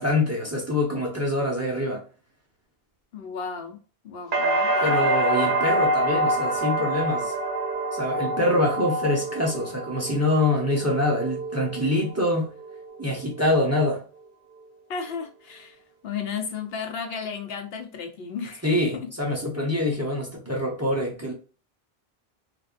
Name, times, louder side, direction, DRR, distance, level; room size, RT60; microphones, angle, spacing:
voice 1, 0.0-2.0 4.8-7.3 7.9-12.5 13.0-14.0 18.6-21.3, left 1 dB, 15° right, 0.7 m, -25 dB
voice 2, 3.1-5.0 14.9-19.1, left 6 dB, 75° left, 0.9 m, -34 dB
sound 1, 4.3-12.2 12.6-13.3, right 1 dB, 55° right, 1.0 m, -26 dB
3.3 x 2.5 x 2.4 m
omnidirectional pair, 1.0 m